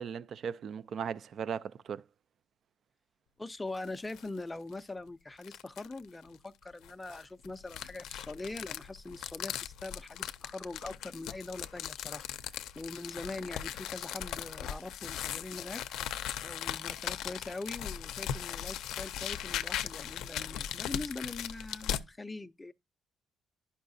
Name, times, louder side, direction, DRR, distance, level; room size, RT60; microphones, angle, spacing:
voice 1, 0.0-2.0, right 7 dB, 55° right, 0.3 m, -37 dB
voice 2, 3.4-12.2 12.8-15.8 16.4-22.7, left 2 dB, 15° left, 0.4 m, -42 dB
sound 1, 3.7-4.3 4.7-4.8 5.4-6.0 6.8-22.0, left 10 dB, 85° left, 0.4 m, -39 dB
11.0 x 5.5 x 2.6 m
cardioid pair, 105°, 0 cm